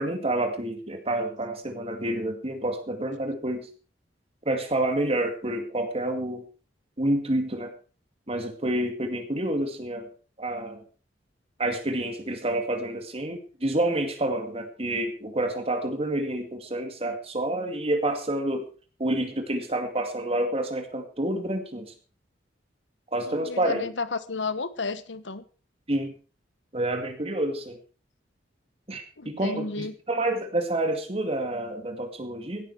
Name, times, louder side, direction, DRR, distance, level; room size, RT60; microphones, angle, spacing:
voice 1, 0.0-3.7 4.5-6.4 7.0-7.7 8.3-10.1 10.4-10.8 11.6-18.7 19.0-21.9 23.1-23.8 25.9-26.1 26.7-27.8 28.9-32.7, right 1 dB, 35° right, 6 dB, 2.3 m, -28 dB
voice 2, 23.3-25.4 29.2-29.9, left 4 dB, 80° left, 14 dB, 1.2 m, -32 dB
16.5 x 12.0 x 4.7 m, 0.37 s
head